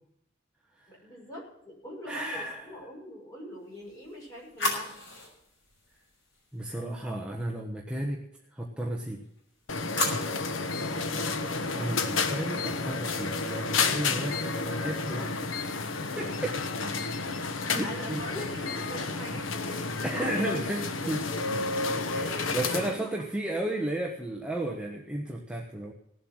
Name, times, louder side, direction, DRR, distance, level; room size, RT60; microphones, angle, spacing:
voice 1, 0.9-5.0 17.8-20.5 21.0-21.2 22.1-23.2, equal, 20° left, -4 dB, 6.4 m, -43 dB
voice 2, 2.1-2.7 6.5-8.2 8.5-9.2 11.7-15.4 16.2-16.6 17.7-18.2 20.0-21.2 22.1-25.9, right 1 dB, 5° right, -1 dB, 1.2 m, -33 dB
sound 1, 3.7-6.8 9.2-10.8, left 1 dB, 65° left, 6.3 m, -36 dB
sound 2, 9.7-23.0, left 4 dB, 90° left, 1.2 m, -31 dB
18.0 x 7.8 x 6.2 m, 0.77 s
head